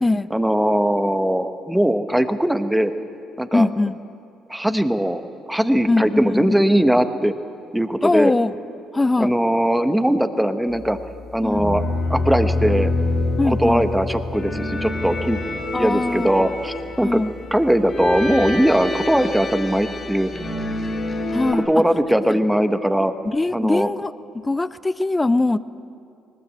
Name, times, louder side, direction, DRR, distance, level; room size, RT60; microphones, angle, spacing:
voice 1, 0.3-2.9 3.4-3.7 4.5-5.2 5.5-7.3 7.7-8.3 9.2-11.0 11.3-11.8 12.1-12.9 13.4-15.4 15.8-17.2 17.5-20.3 21.5-23.1 23.5-23.9, equal, 5° right, 9 dB, 1.2 m, -20 dB
voice 2, 3.5-4.0 5.9-6.6 8.0-8.6 8.9-9.3 11.4-11.7 13.4-13.9 15.7-16.3 17.0-17.3 21.3-21.8 23.2-24.1 24.4-25.6, left 2 dB, 20° left, 16 dB, 0.6 m, -21 dB
sound 1, 11.5-21.5, left 2 dB, 45° left, 4.9 m, -26 dB
19.5 x 19.5 x 7.6 m, 2.5 s
supercardioid pair, 60°, 0 cm